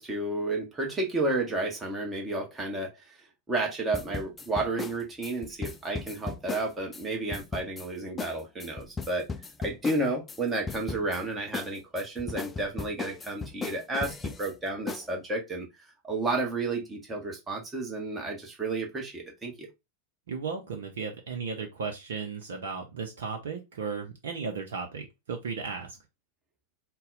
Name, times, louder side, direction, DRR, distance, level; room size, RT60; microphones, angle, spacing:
voice 1, 0.0-3.1 3.5-9.2 9.6-15.7 16.0-19.7, right 2 dB, 15° right, 1.1 m, -31 dB
sound 1, 3.9-7.0 7.3-7.9 8.2-8.3 8.6-10.4 10.7-11.2 11.5-14.5 14.9-15.1, left 4 dB, 15° left, 0.4 m, -36 dB
voice 2, 20.3-26.0, right 5 dB, 60° right, 0.7 m, -35 dB
4.0 x 2.2 x 3.9 m
figure-of-eight pair, 90°, 0 cm